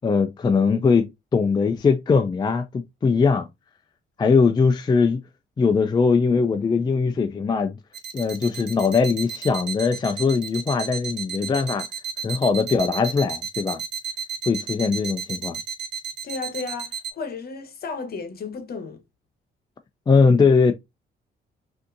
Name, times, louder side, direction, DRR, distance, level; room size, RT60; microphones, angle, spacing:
voice 1, 0.0-1.1 1.3-3.5 4.2-5.2 5.6-7.8 8.1-11.9 12.2-13.8 14.5-15.6 20.1-20.7, left 5 dB, 20° left, 0.3 m, -20 dB
sound 1, 7.9-17.1, right 7 dB, 60° right, 0.8 m, -32 dB
voice 2, 16.2-19.0, left 4 dB, 50° left, 1.0 m, -33 dB
3.5 x 2.6 x 2.5 m
cardioid pair, 90°, 20 cm